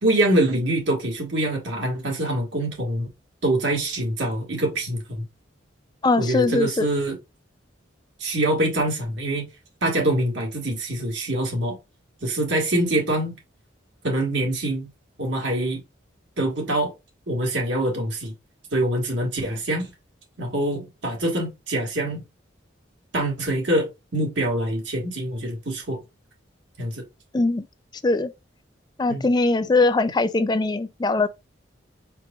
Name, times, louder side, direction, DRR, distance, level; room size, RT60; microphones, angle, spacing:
voice 1, 0.0-3.1 3.4-5.2 6.2-7.2 8.2-9.4 9.8-11.8 12.2-13.3 14.0-14.9 15.2-15.8 16.4-16.9 17.3-18.3 18.7-19.9 20.4-22.2 23.1-26.0 26.8-27.0 29.1-29.3, right 1 dB, 70° right, 1.7 m, -24 dB
voice 2, 6.0-6.9 27.3-27.6 28.0-28.3 29.0-31.3, left 3 dB, 20° left, 0.3 m, -21 dB
4.9 x 4.5 x 2.3 m
head